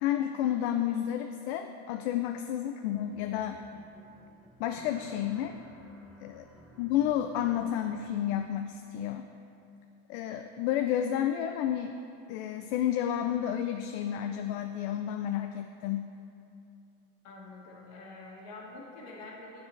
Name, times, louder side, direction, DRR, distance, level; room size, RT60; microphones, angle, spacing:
voice 1, 0.0-3.6 4.6-5.6 6.2-6.4 6.8-9.3 10.1-12.0 12.3-16.1, left 10 dB, 75° left, 6 dB, 0.5 m, -31 dB
sound 1, 2.9-8.4, right 1 dB, 5° right, 0.5 m, -55 dB
voice 2, 17.2-19.6, left 2 dB, 50° left, -3 dB, 1.8 m, -46 dB
8.8 x 7.3 x 3.2 m, 2.6 s
supercardioid pair, 140°, 34 cm